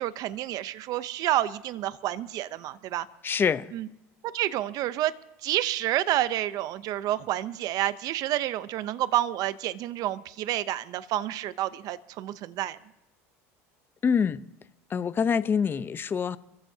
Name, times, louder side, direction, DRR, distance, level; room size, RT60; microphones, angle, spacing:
voice 1, 0.0-3.1 3.7-3.9 4.3-5.1 5.4-12.8, right 14 dB, 55° right, 0.7 m, -29 dB
voice 2, 3.2-3.7 14.0-14.4 14.9-16.4, left 6 dB, 30° left, 0.8 m, -25 dB
28.5 x 14.5 x 2.8 m
supercardioid pair, 100°, 8 cm